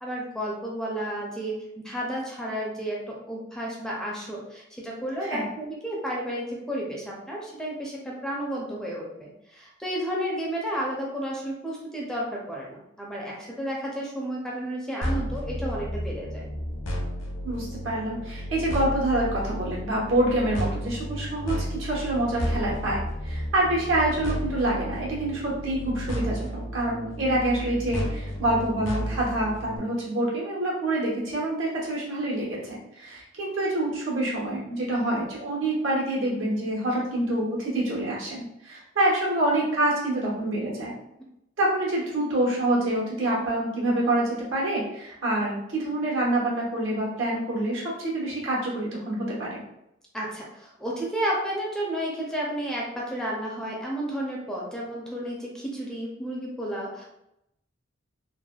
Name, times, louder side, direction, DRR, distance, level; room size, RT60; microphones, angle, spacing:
voice 1, 0.0-16.5 50.1-57.0, equal, 5° left, -4 dB, 0.4 m, -32 dB
sound 1, 15.0-29.8, equal, 75° left, 0.6 m, -32 dB
voice 2, 17.4-40.9 41.6-49.6, right 1 dB, 75° right, -5 dB, 1.1 m, -26 dB
3.2 x 2.1 x 2.2 m, 0.82 s
head